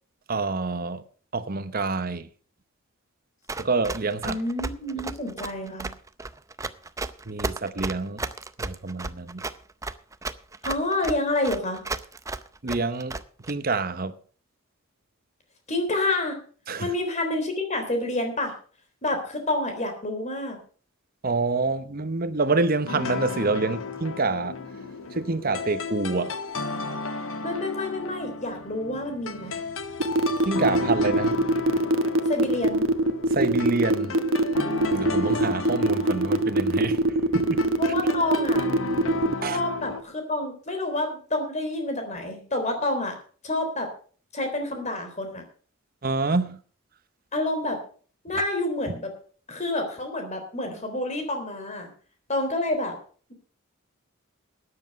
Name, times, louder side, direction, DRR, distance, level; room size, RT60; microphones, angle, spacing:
voice 1, 0.3-1.0 1.3-2.3 3.6-4.4 7.3-8.2 8.6-9.4 12.6-13.2 13.5-14.2 16.7-16.9 21.2-24.6 25.1-26.4 30.4-31.4 33.3-34.2 34.9-37.0 37.3-37.7 39.4-39.6 46.0-46.6 48.3-48.4, right 3 dB, 45° right, 0.9 m, -27 dB
Run, 3.5-13.5, right 3 dB, 15° right, 0.5 m, -33 dB
voice 2, 4.3-5.9 10.6-11.8 15.7-16.4 16.8-18.5 19.0-20.6 27.4-29.6 32.3-32.9 37.8-38.7 39.5-43.2 43.4-43.9 44.3-45.4 47.3-47.8 48.2-49.1 49.5-51.9 52.3-53.0, left 2 dB, 35° left, 3.6 m, -28 dB
sound 1, 22.9-40.0, left 4 dB, 75° left, 1.2 m, -34 dB
sound 2, 30.0-39.3, right 2 dB, 70° right, 1.1 m, -22 dB
13.5 x 9.8 x 5.3 m
head